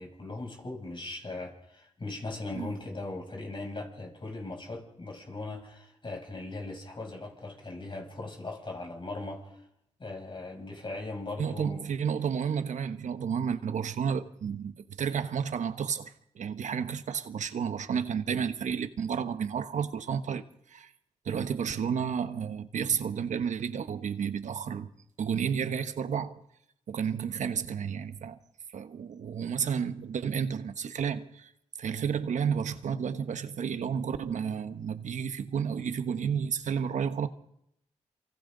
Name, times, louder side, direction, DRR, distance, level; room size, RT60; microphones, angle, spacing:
voice 1, 0.0-9.6 10.0-11.9 27.1-27.2, left 2 dB, 40° left, 7.4 m, -39 dB
voice 2, 11.4-20.4 20.7-20.9 21.2-24.9 25.2-26.4 26.9-28.4 28.7-31.5 31.8-37.3, right 7 dB, 80° right, 1.2 m, -31 dB
28.0 x 24.5 x 4.0 m
cardioid pair, 60°, 12 cm